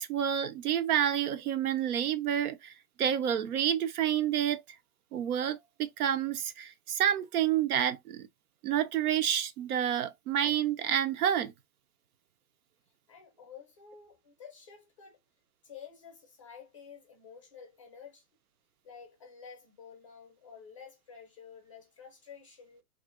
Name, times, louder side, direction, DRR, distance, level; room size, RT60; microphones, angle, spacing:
voice 1, 0.0-2.7 3.0-4.6 5.1-8.3 8.6-11.5, right 10 dB, 85° right, 0.7 m, -29 dB
voice 2, 13.1-15.2 15.6-18.3 18.8-22.8, left 7 dB, 25° left, 0.5 m, -51 dB
2.8 x 2.5 x 2.3 m
hypercardioid pair, 165°, 43 cm